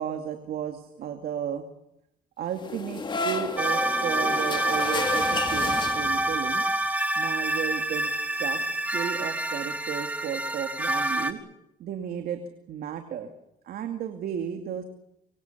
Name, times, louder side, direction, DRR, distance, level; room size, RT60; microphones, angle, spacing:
voice 1, 0.0-1.6 2.4-6.6 7.2-11.4 11.8-12.4 12.7-13.3 13.6-14.8, right 9 dB, 65° right, 5 dB, 2.5 m, -33 dB
sound 1, 2.5-6.5, left 3 dB, 30° left, 2.6 m, -32 dB
sound 2, 3.6-11.3, right 1 dB, 10° right, 2.4 m, -27 dB
25.5 x 24.0 x 7.0 m, 0.82 s
cardioid pair, 110°, 17 cm